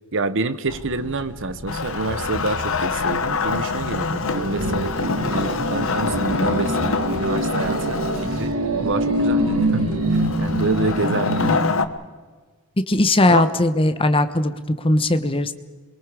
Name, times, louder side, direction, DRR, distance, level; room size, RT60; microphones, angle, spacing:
voice 1, 0.1-9.8 10.1-11.9 13.3-13.5, right 3 dB, 60° right, 12 dB, 1.0 m, -28 dB
sound 1, 0.7-10.7, left 1 dB, 85° left, 1.5 m, -38 dB
Wood, 1.7-8.5 10.1-11.9, left 4 dB, 65° left, 1.1 m, -25 dB
sound 2, 4.2-11.6, right 1 dB, 80° right, 2.6 m, -24 dB
voice 2, 12.9-14.5 14.8-15.5, left 2 dB, 25° left, 10 dB, 1.1 m, -18 dB
27.5 x 23.0 x 5.0 m, 1.4 s
head